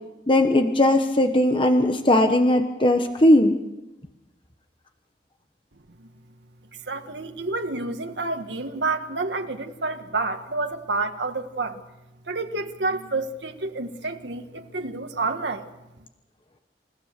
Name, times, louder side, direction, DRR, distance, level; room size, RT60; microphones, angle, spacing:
voice 1, 0.3-3.5, left 1 dB, 30° left, 6 dB, 1.2 m, -18 dB
voice 2, 6.9-11.8 12.3-15.7, right 3 dB, 90° right, 5 dB, 1.7 m, -29 dB
28.5 x 16.0 x 6.7 m, 0.99 s
head